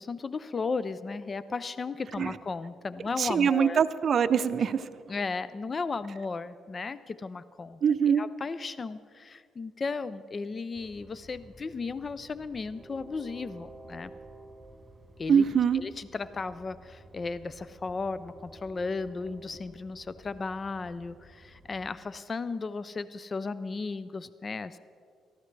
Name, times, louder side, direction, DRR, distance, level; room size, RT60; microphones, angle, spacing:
voice 1, 0.0-3.8 5.1-7.8 8.1-14.1 15.2-15.4 15.7-24.8, left 4 dB, 35° left, 15 dB, 0.4 m, -35 dB
voice 2, 3.2-4.9 7.8-8.2 15.3-15.8, right 7 dB, 55° right, 11 dB, 0.5 m, -23 dB
Train, 10.7-22.0, right 2 dB, 15° right, 4.1 m, -52 dB
18.5 x 13.5 x 3.3 m, 2.3 s
cardioid pair, 90°, 0 cm